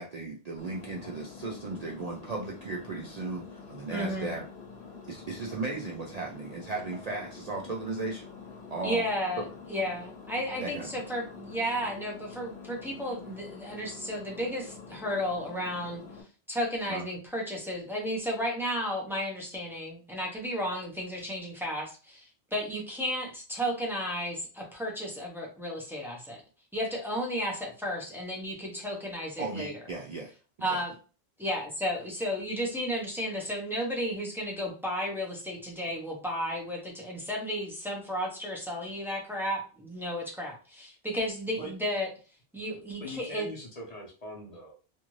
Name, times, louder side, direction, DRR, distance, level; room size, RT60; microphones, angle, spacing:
voice 1, 0.0-4.4 5.1-8.3 8.7-9.0 9.4-9.5 10.6-11.0 16.9-17.0 29.4-30.3 30.7-30.8, right 3 dB, 50° right, -2 dB, 0.5 m, -36 dB
Engine, 0.6-16.2, left 5 dB, 80° left, 1.0 m, -47 dB
voice 2, 3.9-4.4 8.8-9.4 9.7-16.0 16.5-26.4 26.7-29.7 30.6-31.0 31.4-42.1 42.5-43.5, equal, 5° right, -2 dB, 0.6 m, -33 dB
voice 3, 43.0-44.7, left 1 dB, 40° left, -1 dB, 0.8 m, -41 dB
2.6 x 2.5 x 3.0 m, 0.36 s
omnidirectional pair, 1.1 m